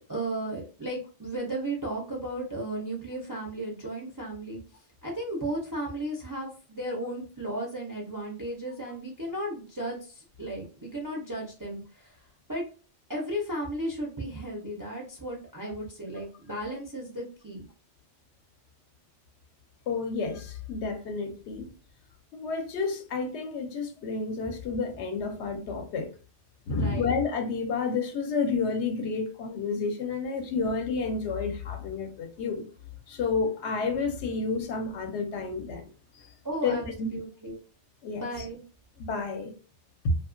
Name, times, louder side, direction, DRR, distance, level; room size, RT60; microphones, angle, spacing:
voice 1, 0.1-4.6 5.0-12.2 12.5-12.6 13.1-17.6 24.4-24.5 26.7-27.2 36.4-37.6 38.2-38.6, right 1 dB, 30° right, 0.4 m, -35 dB
voice 2, 19.9-21.7 22.3-26.1 26.7-32.7 33.1-35.9 36.1-36.3 36.6-37.1 38.0-38.5 39.0-39.6 40.0-40.1, left 4 dB, 75° left, 0.8 m, -30 dB
2.7 x 2.3 x 2.4 m
omnidirectional pair, 1.2 m